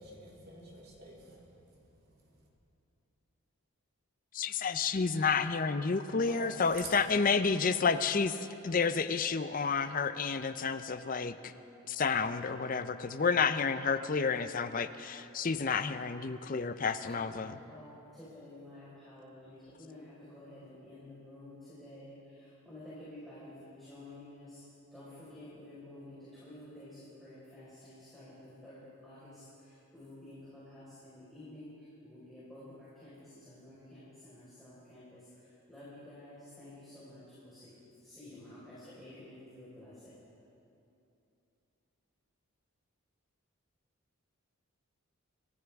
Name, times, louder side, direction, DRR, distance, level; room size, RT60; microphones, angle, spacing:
voice 1, 0.0-2.5 6.2-6.9, right 2 dB, 45° right, -3 dB, 2.9 m, -49 dB
voice 2, 4.3-11.5 11.9-17.6, left 5 dB, 40° left, 11 dB, 0.5 m, -30 dB
voice 3, 17.0-40.2, left 1 dB, ahead, -12 dB, 4.6 m, -51 dB
28.0 x 14.0 x 3.5 m, 2.8 s
head